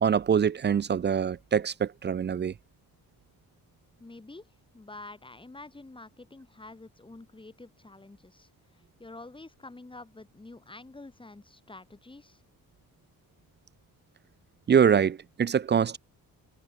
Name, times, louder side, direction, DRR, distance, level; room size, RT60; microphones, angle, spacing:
voice 1, 0.0-2.5 14.7-16.0, right 7 dB, 30° right, 0.3 m, -24 dB
voice 2, 4.0-4.4 4.7-12.4, left 2 dB, 15° left, 3.1 m, -48 dB
wide cardioid pair, 145°, 37 cm